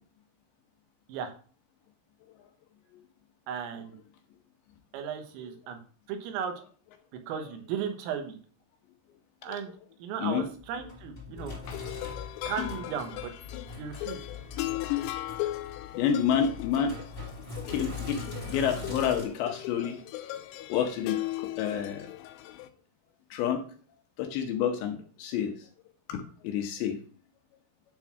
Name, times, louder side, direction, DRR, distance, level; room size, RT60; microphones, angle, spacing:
voice 1, 3.5-4.0 4.9-5.8 6.1-6.5 7.3-8.4 9.4-9.7 10.0-11.5 12.5-13.3 13.8-14.2, right 7 dB, 90° right, 6 dB, 3.9 m, -35 dB
Sink (filling or washing), 10.4-19.2, left 3 dB, 15° left, 2.3 m, -41 dB
sound 1, 11.7-22.7, left 16 dB, 90° left, 3.3 m, -37 dB
voice 2, 16.0-17.0 17.6-18.2 18.5-20.0 20.3-22.2 23.3-23.6 24.2-25.5 26.1-27.0, left 8 dB, 75° left, 4 dB, 2.9 m, -29 dB
11.5 x 4.0 x 6.0 m, 0.42 s
omnidirectional pair, 5.8 m